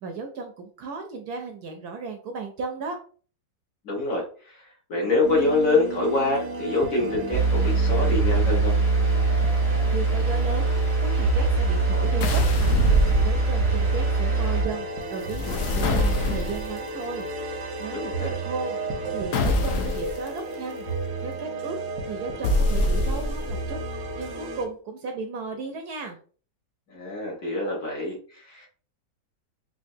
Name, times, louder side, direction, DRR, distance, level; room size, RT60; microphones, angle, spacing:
voice 1, 0.0-3.0 9.9-10.7 11.0-12.9 13.2-17.3 17.8-18.8 19.1-20.9 21.2-21.8 22.1-23.8 24.2-26.2, right 4 dB, 70° right, 4 dB, 1.1 m, -35 dB
voice 2, 3.8-4.2 4.9-8.7 17.9-18.3 26.9-28.7, left 2 dB, 50° left, -2 dB, 1.4 m, -25 dB
sound 1, 5.2-24.7, right 2 dB, 85° right, 1.5 m, -33 dB
sound 2, 7.3-14.6, right 3 dB, ahead, 0.7 m, -22 dB
sound 3, 12.2-13.8 15.2-16.8 19.3-20.2 22.4-23.5, left 1 dB, 70° left, 0.7 m, -24 dB
4.5 x 2.5 x 2.6 m, 0.40 s
omnidirectional pair, 1.9 m